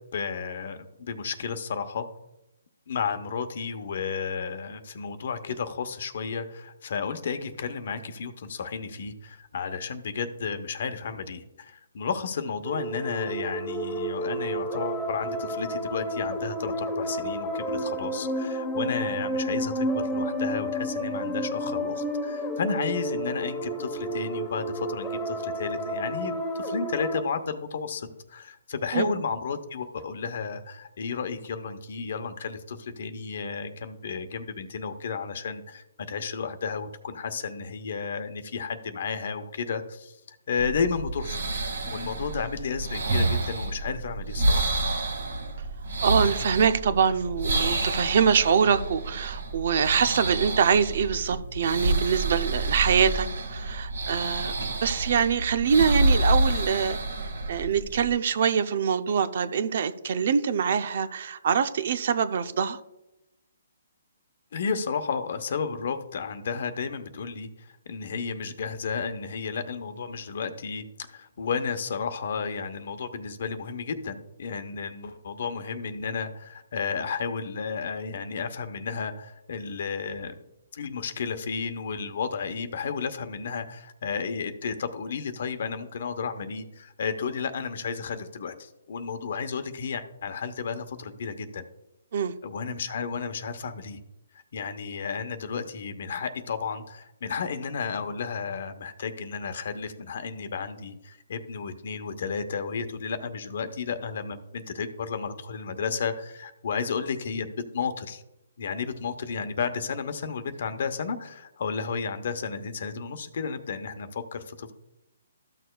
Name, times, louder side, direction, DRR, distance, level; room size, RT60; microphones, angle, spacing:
voice 1, 0.1-2.1 2.9-41.4 41.8-44.8 64.5-80.4 80.7-91.6 92.4-94.0 94.5-107.5 107.7-108.2 108.6-114.7, left 5 dB, 55° left, 0.9 m, -32 dB
sound 1, 12.6-27.2, equal, 5° left, 1.1 m, -31 dB
sound 2, 40.6-58.1, right 2 dB, 80° right, 2.1 m, -28 dB
voice 2, 46.0-54.6 54.8-57.0 57.5-62.8 92.1-92.3, right 7 dB, 55° right, 0.6 m, -24 dB
13.5 x 6.6 x 2.3 m
hypercardioid pair, 155°, 0 cm